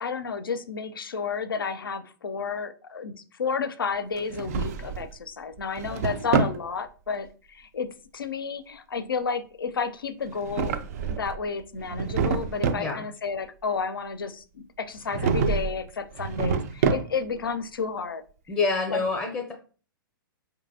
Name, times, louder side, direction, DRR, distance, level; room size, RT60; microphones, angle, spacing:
voice 1, 0.0-18.2 18.9-19.0, left 5 dB, 75° left, 11 dB, 0.4 m, -31 dB
Drawer open or close, 4.2-5.1 5.6-6.6 10.3-11.4 11.8-12.9 15.1-15.8 16.1-17.4, right 5 dB, 45° right, 0.3 m, -27 dB
voice 2, 12.7-13.0 18.5-19.5, left 4 dB, 15° left, 1 dB, 0.5 m, -27 dB
4.5 x 2.7 x 2.6 m, 0.38 s
figure-of-eight pair, 110°, 12 cm